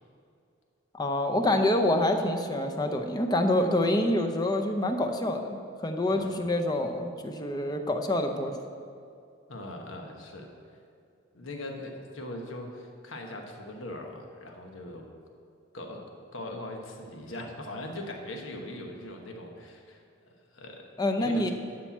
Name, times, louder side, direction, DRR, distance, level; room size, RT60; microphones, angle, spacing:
voice 1, 0.9-8.5 21.0-21.5, left 1 dB, 20° left, 5 dB, 0.6 m, -26 dB
voice 2, 9.5-10.5 11.3-15.1 15.7-16.1 16.3-20.0 20.5-20.9 21.2-21.5, left 1 dB, 80° left, 2 dB, 1.2 m, -40 dB
11.5 x 4.4 x 7.2 m, 2.5 s
head